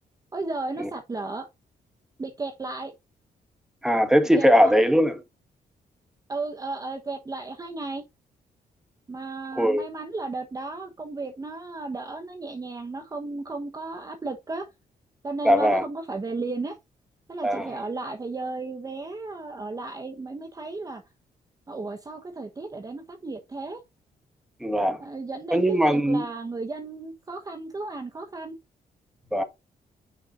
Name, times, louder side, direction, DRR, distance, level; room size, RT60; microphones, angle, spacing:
voice 1, 0.3-1.5 2.2-2.9 4.4-5.2 6.3-8.0 9.1-14.7 15.2-16.8 17.3-21.0 21.7-23.8 25.0-28.6, right 3 dB, 25° right, 1.1 m, -34 dB
voice 2, 3.8-5.1 9.5-9.8 15.4-15.8 17.4-17.7 24.6-25.0 25.5-26.2 29.3-29.4, equal, 5° right, 1.6 m, -20 dB
9.3 x 6.1 x 2.6 m
cardioid pair, 125°, 15 cm